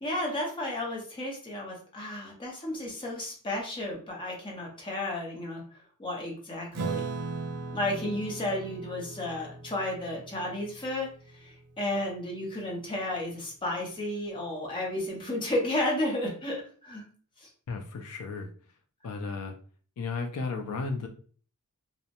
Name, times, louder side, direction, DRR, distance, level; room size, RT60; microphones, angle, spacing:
voice 1, 0.0-5.6 6.0-7.1 7.7-17.1 17.4-17.5, left 1 dB, 25° left, -1 dB, 0.7 m, -33 dB
Acoustic guitar / Strum, 6.7-11.6, right 3 dB, 90° right, 0.5 m, -38 dB
voice 2, 17.7-18.5 19.0-19.6 20.0-21.1, left 4 dB, 70° left, 4 dB, 0.4 m, -34 dB
2.7 x 2.1 x 2.5 m, 0.43 s
head